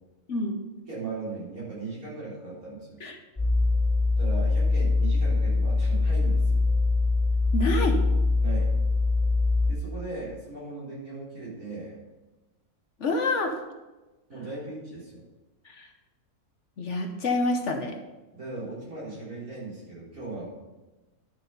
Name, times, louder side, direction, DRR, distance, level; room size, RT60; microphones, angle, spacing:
voice 1, 0.3-0.6 3.0-3.2 7.5-8.0 13.0-13.5 15.6-15.9 16.8-18.0, left 2 dB, 55° left, 4 dB, 1.1 m, -27 dB
voice 2, 0.9-3.0 4.2-6.6 8.4-8.7 9.7-12.0 14.3-15.2 18.3-20.5, right 3 dB, 65° right, -7 dB, 4.4 m, -38 dB
sound 1, 3.4-9.7, left 3 dB, 25° left, 2.2 m, -23 dB
11.0 x 6.2 x 5.4 m, 1.1 s
omnidirectional pair, 1.6 m